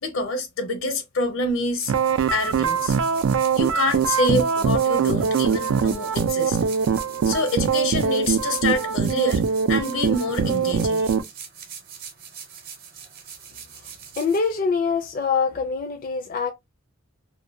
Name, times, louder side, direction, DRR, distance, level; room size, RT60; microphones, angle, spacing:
voice 1, 0.0-1.9 2.3-2.9 3.5-6.6 7.3-9.4 9.7-11.1, left 2 dB, 85° left, 0.7 m, -26 dB
sound 1, 1.5-15.1, right 7 dB, 50° right, 0.8 m, -42 dB
sound 2, 1.9-11.2, right 6 dB, 80° right, 0.3 m, -22 dB
voice 2, 14.2-16.5, left 5 dB, 45° left, 0.4 m, -24 dB
2.7 x 2.2 x 2.4 m
head